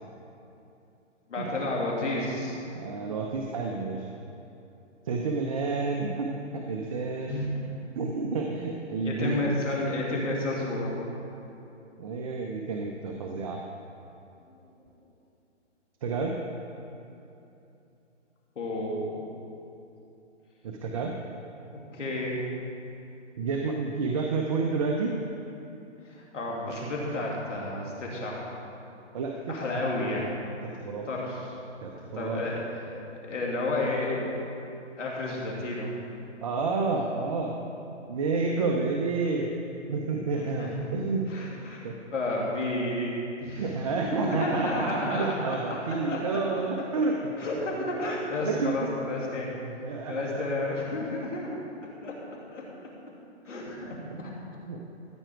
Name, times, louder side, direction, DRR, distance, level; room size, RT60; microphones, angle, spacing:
voice 1, 1.3-2.6 7.3-7.6 9.0-10.9 18.5-19.2 21.9-22.4 26.0-28.5 29.5-30.4 31.0-31.4 32.1-32.9 33.3-34.3 35.0-35.9 40.3-40.9 41.3-41.8 42.1-45.3 45.7-46.6 47.4-49.6 50.1-51.6 52.0-52.6 53.4-54.3, left 2 dB, 80° left, -3 dB, 3.0 m, -31 dB
voice 2, 2.7-4.1 5.0-7.4 8.0-9.6 12.0-13.6 16.0-16.4 20.6-21.2 23.4-25.2 29.1-29.6 30.1-30.2 30.6-31.1 31.8-32.4 36.4-37.6 38.1-39.5 39.9-41.3 41.8-42.0 43.5-47.2 47.8-48.1 48.4-48.9 49.6-50.5 51.2-51.3 54.1-54.2 54.7-54.9, right 4 dB, 30° right, 1 dB, 0.7 m, -30 dB
14.5 x 8.9 x 4.6 m, 2.8 s
hypercardioid pair, 155°, 37 cm